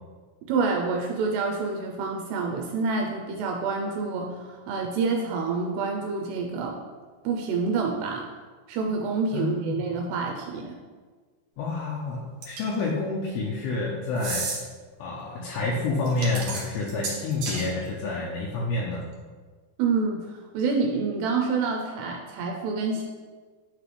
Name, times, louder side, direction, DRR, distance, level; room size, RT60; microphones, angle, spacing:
voice 1, 0.5-6.8 7.2-8.3 8.7-10.8 19.8-23.0, right 4 dB, 85° right, 1 dB, 2.7 m, -27 dB
voice 2, 9.3-9.8 11.6-14.5 15.0-19.1, left 3 dB, 80° left, -4 dB, 2.3 m, -28 dB
sound 1, 12.4-12.8 14.2-14.6 16.0-17.7, right 4 dB, 65° right, 2.2 m, -32 dB
8.9 x 4.1 x 3.2 m, 1.4 s
omnidirectional pair, 4.8 m